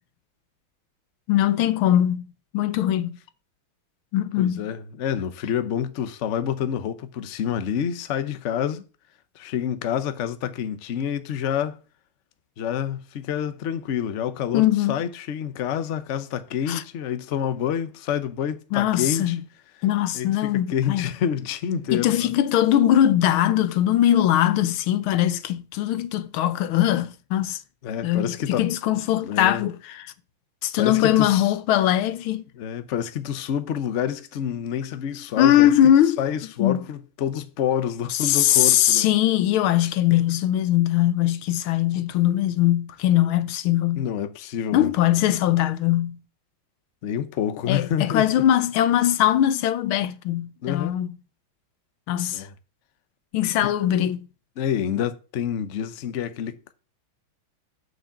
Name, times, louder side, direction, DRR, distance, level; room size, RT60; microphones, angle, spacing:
voice 1, 1.3-2.3 2.5-3.2 4.1-4.6 14.5-14.9 16.7-16.8 18.7-19.4 19.8-21.1 21.9-27.6 28.0-30.1 30.6-32.4 35.4-36.2 36.6-36.8 38.2-44.1 44.7-46.2 47.7-51.1 52.1-52.5 53.3-54.3, left 12 dB, 85° left, 1.6 m, -21 dB
voice 2, 4.4-8.8 9.3-11.8 12.6-19.4 20.1-22.3 27.8-28.7 29.2-29.6 30.8-31.5 32.5-35.7 36.2-39.1 43.9-44.9 47.0-48.4 50.6-51.0 52.3-52.5 53.6-53.7 54.6-56.7, left 9 dB, 55° left, 0.8 m, -28 dB
7.0 x 6.5 x 7.1 m
omnidirectional pair, 2.2 m